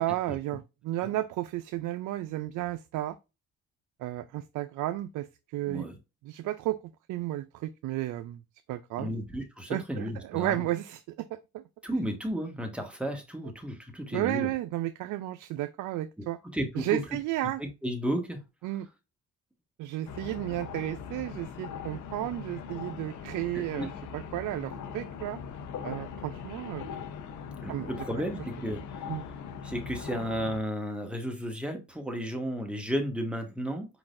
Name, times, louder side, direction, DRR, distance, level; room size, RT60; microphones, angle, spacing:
voice 1, 0.0-3.2 4.0-5.9 6.2-6.8 7.1-8.4 8.7-9.1 9.7-11.3 11.5-11.6 14.1-16.4 16.8-17.6 18.6-18.9 19.8-25.4 25.8-26.8 27.7-27.9 29.1-29.2, right 15 dB, 85° right, 0.5 m, -33 dB
voice 2, 5.7-6.0 9.0-10.6 11.8-14.5 16.2-16.3 16.5-17.0 17.6-18.4 23.5-23.9 27.6-28.8 29.6-33.9, equal, 5° right, 1.6 m, -33 dB
sound 1, 20.1-30.6, left 6 dB, 75° left, 0.8 m, -40 dB
4.8 x 3.9 x 2.5 m
cardioid pair, 90°, 30 cm